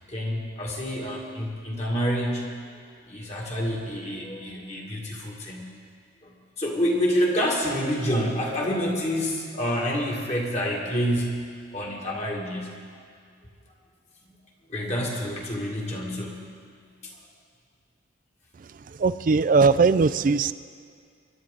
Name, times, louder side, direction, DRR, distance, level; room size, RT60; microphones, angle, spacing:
voice 1, 0.1-2.5 3.1-5.7 6.2-11.4 11.7-12.8 14.7-16.4 17.0-17.1, equal, 35° left, -2 dB, 2.1 m, -28 dB
voice 2, 19.0-20.5, right 4 dB, 40° right, 15 dB, 0.3 m, -19 dB
23.5 x 11.0 x 3.9 m, 2.2 s
head